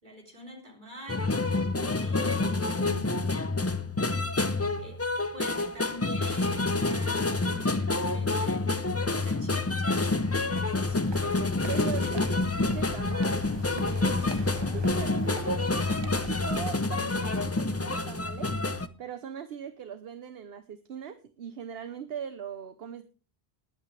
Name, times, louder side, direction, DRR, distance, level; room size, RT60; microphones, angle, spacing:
voice 1, 0.0-1.3 1.8-3.3 4.8-5.0 5.3-7.7 8.1-11.0 12.0-12.2 14.1-14.3, equal, 50° right, 1 dB, 3.7 m, -45 dB
sound 1, 1.1-18.9, left 3 dB, 20° left, 0.5 m, -28 dB
sound 2, 10.2-16.8, right 3 dB, 25° right, 0.9 m, -44 dB
voice 2, 11.7-13.4 13.7-18.6 19.0-23.0, right 8 dB, 75° right, 10 dB, 1.0 m, -40 dB
20.5 x 8.3 x 3.3 m, 0.35 s
omnidirectional pair, 1.1 m